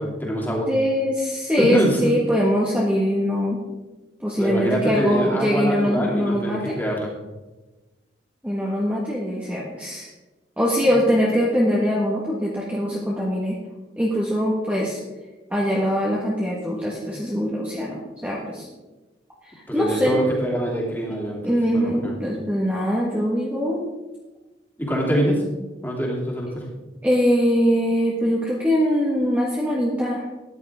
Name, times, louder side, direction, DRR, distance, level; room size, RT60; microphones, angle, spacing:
voice 1, 0.0-0.7 1.6-2.1 4.4-7.1 19.7-22.1 24.8-25.4 25.8-26.7, equal, 10° left, -3 dB, 2.8 m, -24 dB
voice 2, 0.7-3.6 4.2-6.8 8.4-10.1 10.6-13.6 13.9-15.0 15.5-18.6 19.4-20.2 21.4-23.8 27.0-30.2, equal, 10° right, -5 dB, 1.6 m, -22 dB
14.0 x 10.5 x 3.7 m, 1.2 s
head